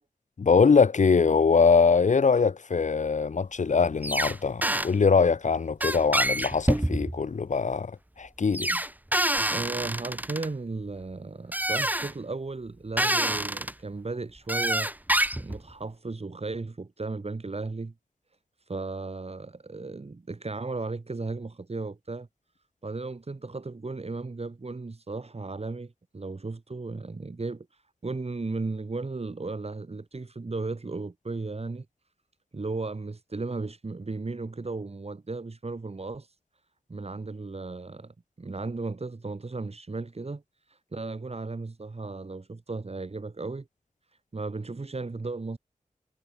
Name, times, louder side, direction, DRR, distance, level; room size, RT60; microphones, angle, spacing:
voice 1, 0.4-8.7, left 5 dB, 60° left, 1.0 m, -22 dB
sound 1, 4.0-4.4 4.6-4.9 5.8-7.2 8.5-10.5 11.5-12.1 13.0-13.7 14.5-15.6, right 1 dB, 10° right, 2.3 m, -26 dB
voice 2, 9.5-14.9 15.4-17.9 18.7-22.3 22.8-27.7 28.0-31.9 32.5-36.3 36.9-40.4 40.7-43.7 44.3-45.6, right 3 dB, 50° right, 4.0 m, -35 dB
cardioid pair, 50°, 14 cm